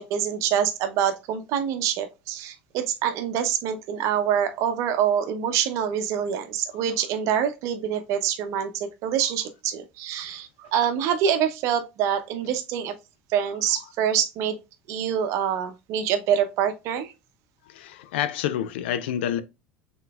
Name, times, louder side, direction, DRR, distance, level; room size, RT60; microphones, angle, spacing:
voice 1, 0.0-12.9 13.3-14.6 14.9-17.1, right 9 dB, 60° right, 0.7 m, -25 dB
voice 2, 17.7-19.4, left 10 dB, 75° left, 0.5 m, -28 dB
5.8 x 3.8 x 2.3 m
hypercardioid pair, 70°, 6 cm